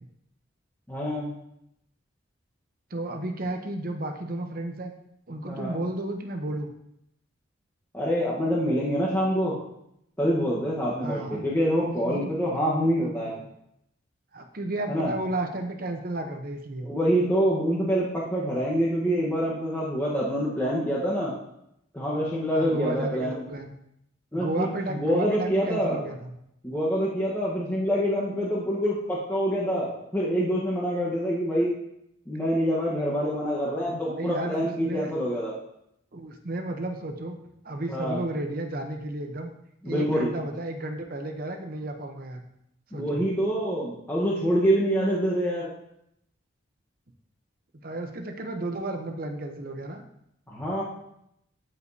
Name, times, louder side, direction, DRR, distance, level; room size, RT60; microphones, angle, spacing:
voice 1, 0.9-1.3 5.5-5.8 7.9-9.5 10.2-13.3 14.9-15.1 16.8-21.3 21.9-23.4 24.3-26.0 26.6-31.7 32.3-35.5 37.9-38.2 39.8-40.3 42.9-45.7 50.5-50.8, equal, 10° left, -7 dB, 1.2 m, -26 dB
voice 2, 2.9-4.9 5.3-6.7 11.0-11.4 11.9-12.5 13.0-13.4 14.3-16.9 22.5-23.7 24.3-26.3 33.9-35.1 36.1-37.4 37.6-39.5 39.8-42.4 42.9-43.2 47.8-50.0, right 1 dB, 50° right, 4 dB, 0.9 m, -33 dB
12.5 x 5.1 x 2.8 m, 0.78 s
head